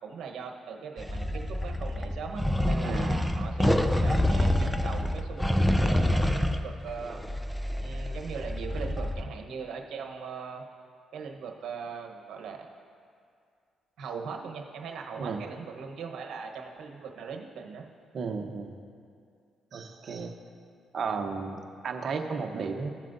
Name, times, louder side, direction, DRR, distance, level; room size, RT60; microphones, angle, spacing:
voice 1, 0.0-7.2 7.8-10.6 11.1-12.7 14.0-17.8, right 5 dB, 75° right, 2 dB, 1.0 m, -40 dB
sound 1, 1.0-9.2, left 1 dB, 5° left, 0.5 m, -27 dB
voice 2, 18.1-18.7 19.7-20.3 20.9-22.9, right 5 dB, 55° right, 4 dB, 0.9 m, -33 dB
17.5 x 7.5 x 2.7 m, 2.3 s
cardioid pair, 90°, 0 cm